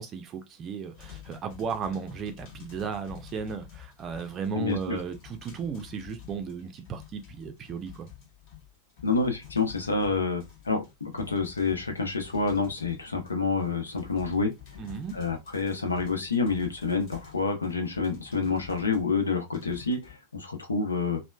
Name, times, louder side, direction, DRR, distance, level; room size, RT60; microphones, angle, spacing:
voice 1, 0.0-8.1 14.8-15.2, right 6 dB, 30° right, 0.4 m, -35 dB
sound 1, 1.0-19.0 19.5-20.1, left 10 dB, 45° left, 1.2 m, -49 dB
voice 2, 4.5-5.0 9.0-14.5 15.1-21.2, left 4 dB, 80° left, 0.7 m, -28 dB
3.0 x 2.0 x 2.2 m
figure-of-eight pair, 90°, 0 cm